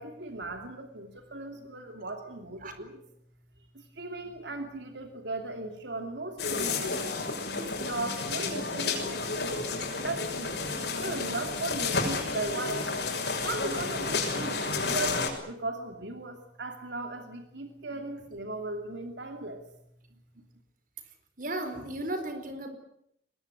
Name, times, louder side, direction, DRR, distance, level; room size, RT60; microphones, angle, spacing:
voice 1, 0.0-3.0 3.7-6.9 7.6-9.6 10.0-10.5 10.9-13.0 13.4-19.6, right 2 dB, 85° right, 5 dB, 2.8 m, -37 dB
sound 1, 6.4-15.3, left 4 dB, 65° left, 6.4 m, -31 dB
voice 2, 21.4-22.7, right 1 dB, 50° right, 8 dB, 4.4 m, -35 dB
23.0 x 21.0 x 9.7 m, 0.73 s
head